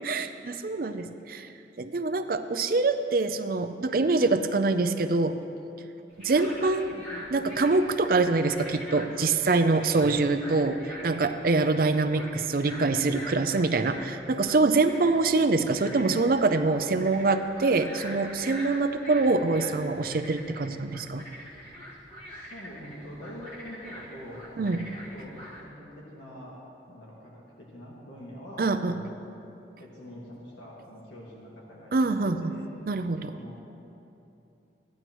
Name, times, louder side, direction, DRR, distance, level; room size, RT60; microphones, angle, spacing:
voice 1, 0.0-1.5 1.8-5.4 6.2-7.0 7.3-21.2 24.6-24.8 28.6-29.0 31.9-32.4 32.9-33.3, right 3 dB, 50° right, 9 dB, 0.5 m, -25 dB
sound 1, 6.1-25.6, equal, 35° left, 2.0 m, -44 dB
voice 2, 6.9-7.3 10.9-11.1 22.2-25.3 25.6-26.6 26.9-29.3 29.8-32.1 32.4-32.6 33.3-33.6, equal, 85° left, -5 dB, 1.7 m, -45 dB
16.0 x 10.5 x 3.1 m, 2.8 s
head